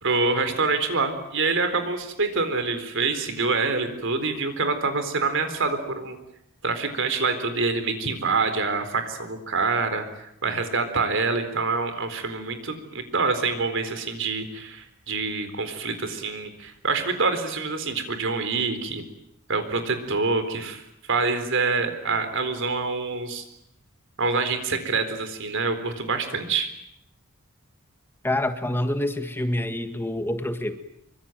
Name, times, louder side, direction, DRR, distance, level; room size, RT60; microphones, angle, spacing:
voice 1, 0.0-6.2 6.6-19.0 19.5-20.8 21.1-23.4 24.2-26.7, right 4 dB, 60° right, 9 dB, 4.1 m, -26 dB
voice 2, 28.2-30.8, left 1 dB, 10° left, 8 dB, 1.7 m, -27 dB
25.5 x 24.5 x 9.3 m, 0.77 s
head